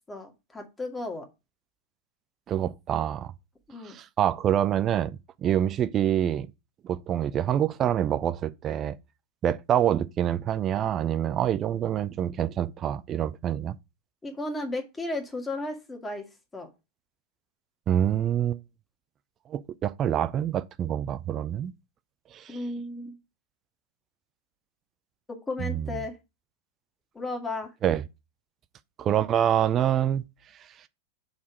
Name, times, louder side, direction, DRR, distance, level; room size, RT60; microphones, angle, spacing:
voice 1, 0.1-1.3 3.7-4.0 14.2-16.2 16.5-16.7 22.5-23.2 25.3-26.1 27.1-27.7, left 2 dB, 15° left, 1.7 m, -34 dB
voice 2, 2.5-3.3 3.8-6.5 6.8-8.9 9.4-13.8 17.9-18.6 19.5-21.7 22.3-22.6 25.6-26.0 27.8-28.0 29.0-30.2, right 10 dB, 30° right, 0.5 m, -26 dB
6.3 x 3.6 x 6.0 m
figure-of-eight pair, 90°, 0 cm